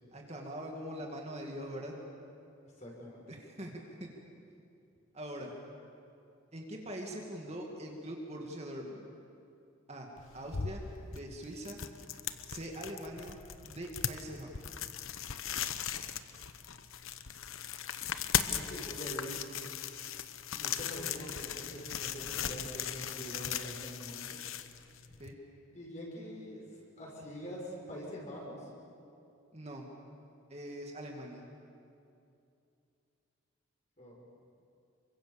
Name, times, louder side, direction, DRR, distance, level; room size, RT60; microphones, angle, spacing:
voice 1, 0.1-1.9 3.3-3.7 4.0-4.1 5.1-5.5 6.5-9.0 9.9-10.1 10.3-10.8 11.1-11.8 12.5-13.4 13.7-14.5 25.2-25.4 29.5-29.9 30.5-31.4, right 1 dB, 30° right, 0 dB, 2.3 m, -42 dB
voice 2, 2.8-3.2 18.5-19.4 20.5-24.4 25.7-26.6 27.0-28.7 34.0-34.2, equal, 35° left, -2 dB, 5.9 m, -44 dB
sound 1, 10.2-25.3, left 8 dB, 75° left, 1.0 m, -38 dB
28.5 x 24.0 x 7.2 m, 2.6 s
head